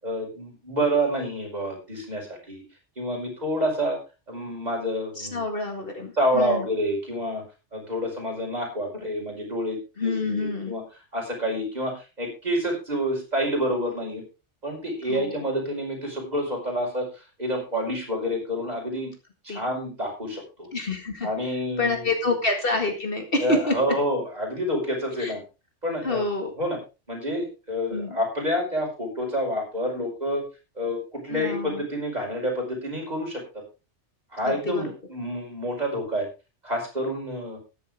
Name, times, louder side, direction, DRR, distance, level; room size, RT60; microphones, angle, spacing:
voice 1, 0.0-2.6 3.0-4.0 4.3-5.4 6.2-7.4 7.7-10.8 11.1-14.2 14.6-19.1 19.4-20.7 21.2-22.3 23.4-25.4 25.8-26.2 26.6-26.8 27.1-30.4 30.8-33.6 34.3-36.3 36.6-37.6, equal, 35° right, 0 dB, 5.4 m, -28 dB
voice 2, 5.2-6.7 10.0-10.7 15.1-15.4 19.5-19.6 20.7-21.3 21.8-23.8 25.2-25.3 26.0-26.5 27.9-28.2 31.3-31.8 34.5-34.8, left 3 dB, 50° left, 5 dB, 2.1 m, -27 dB
14.0 x 10.5 x 3.5 m, 0.29 s
omnidirectional pair, 1.2 m